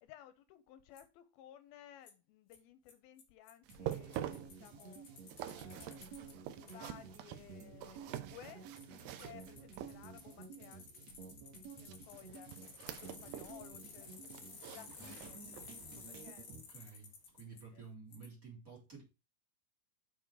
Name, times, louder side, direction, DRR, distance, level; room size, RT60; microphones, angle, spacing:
voice 1, 0.0-5.0 5.4-10.9 11.8-12.5 13.0-14.3 14.7-16.7 17.4-17.8, left 12 dB, 90° left, 2.8 m, -58 dB
Bicycle, 1.0-1.1 2.1-2.2 2.5-2.6 2.9-3.0 3.2-3.3 3.5-6.3 6.7-6.8 8.8-8.9 9.2-17.6 18.1-18.3, left 5 dB, 50° left, 3.2 m, -54 dB
sound 1, 3.6-10.4 11.8-13.6 13.9-15.9 16.3-16.4 17.0-17.1, right 12 dB, 85° right, 2.5 m, -47 dB
sound 2, 3.7-16.6, right 5 dB, 55° right, 2.4 m, -53 dB
voice 2, 16.5-19.0, right 5 dB, 25° right, 3.9 m, -52 dB
6.9 x 6.3 x 4.8 m
omnidirectional pair, 4.2 m